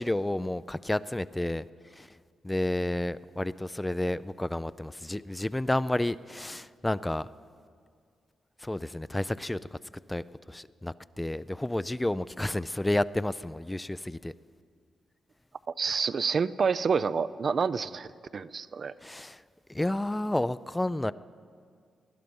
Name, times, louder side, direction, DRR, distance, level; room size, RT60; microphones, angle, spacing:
voice 1, 0.0-1.6 1.9-2.1 2.4-7.3 8.6-9.8 10.1-14.3 15.9-16.0 19.0-19.4 19.7-21.1, left 1 dB, 15° left, 16 dB, 0.4 m, -31 dB
voice 2, 15.7-18.9, right 5 dB, 55° right, 15 dB, 0.4 m, -28 dB
19.5 x 11.5 x 5.4 m, 2.2 s
cardioid pair, 60°, 0 cm